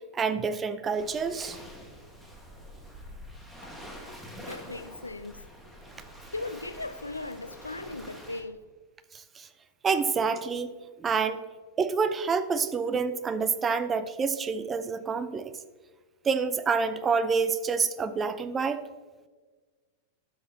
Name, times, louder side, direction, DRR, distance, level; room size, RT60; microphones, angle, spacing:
voice 1, 0.1-1.6 9.1-9.5 9.8-10.7 11.0-11.4 11.8-15.5 16.2-18.8, right 5 dB, 20° right, 0.5 m, -27 dB
Waves surf, 0.9-8.4, equal, 5° right, 1.5 m, -46 dB
voice 2, 4.4-5.5 6.3-8.6, left 2 dB, 80° left, 0.4 m, -38 dB
12.5 x 6.2 x 2.7 m
figure-of-eight pair, 90°, 0 cm